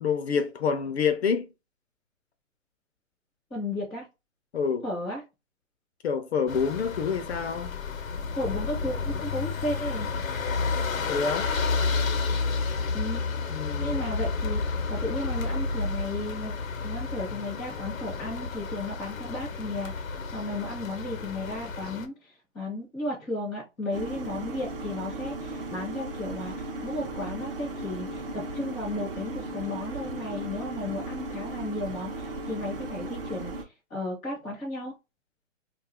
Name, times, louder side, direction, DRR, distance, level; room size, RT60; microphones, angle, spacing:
voice 1, 0.0-1.5 4.5-4.9 6.0-7.7 11.1-11.5 13.5-14.0, left 6 dB, 55° left, 0.5 m, -27 dB
voice 2, 3.5-4.1 4.8-5.2 8.3-10.1 12.9-13.2 13.8-16.5 16.8-19.9 20.3-34.9, left 1 dB, 5° left, 0.5 m, -34 dB
sound 1, 6.5-22.1, left 4 dB, 90° left, 0.8 m, -31 dB
sound 2, 23.9-33.6, right 1 dB, 45° right, 0.6 m, -36 dB
2.4 x 2.4 x 3.5 m
hypercardioid pair, 165°, 39 cm